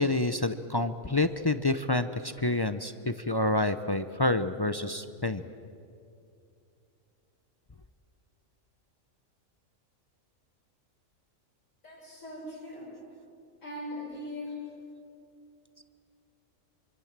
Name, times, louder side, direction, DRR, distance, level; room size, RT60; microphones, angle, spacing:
voice 1, 0.0-5.4, left 2 dB, 30° left, 10 dB, 0.4 m, -28 dB
voice 2, 11.8-12.9 13.6-14.6, left 1 dB, 75° left, -8 dB, 7.0 m, -40 dB
25.5 x 24.5 x 7.4 m, 2.6 s
omnidirectional pair, 1.4 m